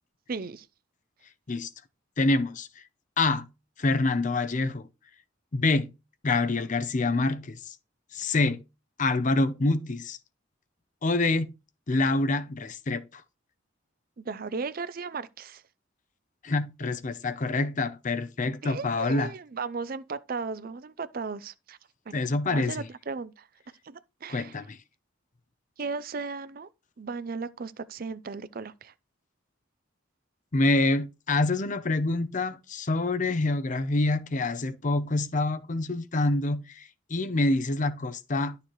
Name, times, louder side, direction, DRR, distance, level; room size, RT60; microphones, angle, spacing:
voice 1, 0.3-0.7 14.2-15.6 18.6-21.8 22.1-22.2 22.5-23.5 23.8-24.6 25.8-26.7 27.0-28.9, right 4 dB, 45° right, 0.5 m, -36 dB
voice 2, 2.2-2.7 3.2-3.5 3.8-4.9 5.5-5.9 6.2-7.8 8.1-8.6 9.0-10.2 11.0-11.5 11.9-13.2 16.4-19.3 22.1-22.9 24.3-24.8 30.5-38.6, left 2 dB, 40° left, 0.6 m, -26 dB
11.5 x 6.6 x 3.1 m
head